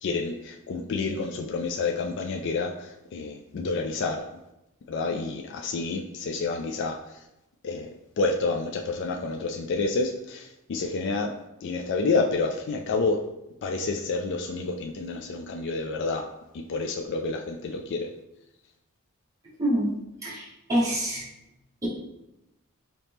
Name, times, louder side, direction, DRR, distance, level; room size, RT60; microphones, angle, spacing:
voice 1, 0.0-2.7 3.1-4.2 4.9-7.0 7.6-7.9 8.2-11.3 11.6-13.2 13.6-16.2 16.7-18.1, left 3 dB, 55° left, 2 dB, 0.3 m, -29 dB
voice 2, 19.6-19.9 20.2-20.4 20.7-21.2, right 1 dB, 15° right, -8 dB, 1.0 m, -25 dB
4.2 x 2.9 x 3.4 m, 0.90 s
head